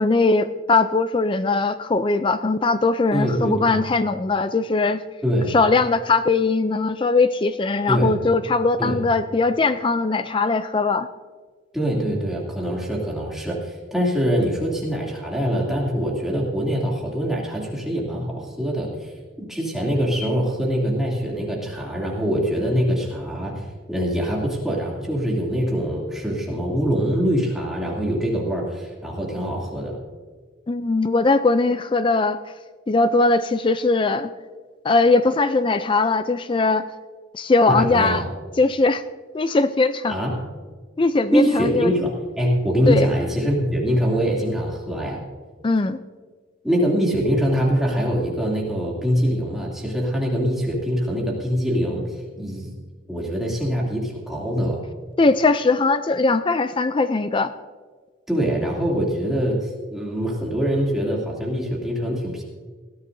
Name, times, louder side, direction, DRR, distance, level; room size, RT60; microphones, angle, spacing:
voice 1, 0.0-5.0 5.5-11.1 30.7-32.4 32.9-34.3 34.8-36.9 37.3-38.2 38.6-39.0 39.3-40.2 41.0-41.9 42.9-43.1 45.6-46.0 55.2-57.5, left 3 dB, 25° left, 12 dB, 0.3 m, -20 dB
voice 2, 3.1-3.8 5.2-5.6 7.9-8.2 8.8-9.0 11.7-19.1 19.5-30.0 37.7-38.3 40.1-40.4 41.3-45.2 46.6-52.7 53.1-54.8 58.3-62.4, equal, ahead, -4 dB, 2.6 m, -23 dB
20.0 x 14.0 x 2.7 m, 1.5 s
head